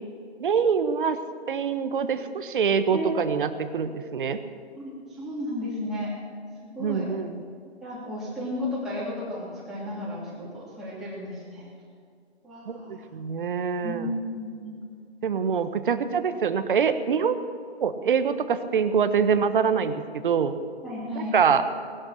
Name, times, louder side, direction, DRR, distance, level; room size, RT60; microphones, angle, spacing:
voice 1, 0.4-1.2 1.5-4.4 6.8-7.4 12.7-14.1 15.2-17.4 17.8-20.5 21.2-21.6, right 6 dB, 50° right, 11 dB, 1.2 m, -25 dB
voice 2, 2.9-3.4 4.7-6.1 6.7-7.1 7.8-11.7 12.4-13.1 13.8-14.7 20.8-21.4, left 1 dB, ahead, -9 dB, 3.0 m, -33 dB
18.5 x 12.0 x 6.5 m, 2.2 s
hypercardioid pair, 155°, 33 cm